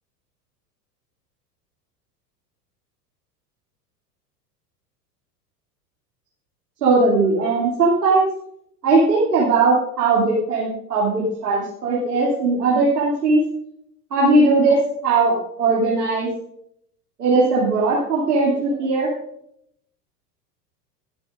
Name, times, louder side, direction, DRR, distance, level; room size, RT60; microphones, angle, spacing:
voice 1, 6.8-8.3 8.8-13.4 14.1-16.3 17.2-19.1, right 3 dB, 70° right, -6 dB, 2.7 m, -19 dB
20.5 x 9.5 x 2.5 m, 0.72 s
figure-of-eight pair, 80°, 49 cm